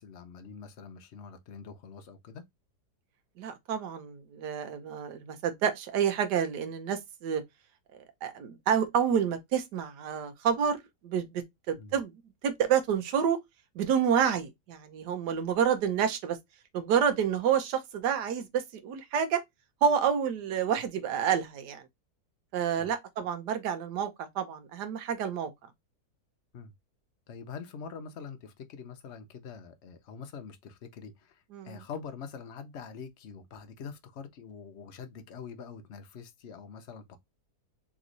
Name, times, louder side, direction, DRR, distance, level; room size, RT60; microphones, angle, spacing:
voice 1, 0.0-2.4 11.8-11.9 22.8-22.9 26.5-26.7 27.3-37.2, left 6 dB, 55° left, 0.9 m, -44 dB
voice 2, 3.4-7.4 8.2-12.1 12.4-13.4 13.7-16.4 16.7-19.4 19.8-21.9 22.5-25.5 31.5-31.8, right 8 dB, 90° right, 1.4 m, -29 dB
3.5 x 3.1 x 3.8 m
omnidirectional pair, 1.7 m